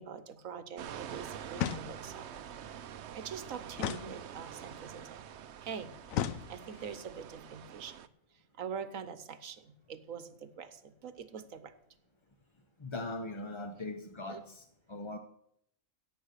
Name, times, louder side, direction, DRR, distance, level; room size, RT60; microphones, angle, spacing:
voice 1, 0.0-2.4 3.1-5.2 5.6-5.9 6.5-8.0 8.6-11.7 14.3-14.4, right 7 dB, 80° right, 12 dB, 1.4 m, -44 dB
sound 1, 0.8-8.1, right 9 dB, 65° right, 0.9 m, -46 dB
sound 2, 1.5-2.3 3.8-4.7 6.1-7.0, left 10 dB, 80° left, 1.1 m, -36 dB
voice 2, 12.8-15.2, left 2 dB, 30° left, 6 dB, 0.6 m, -40 dB
16.0 x 7.8 x 6.6 m, 0.72 s
omnidirectional pair, 1.4 m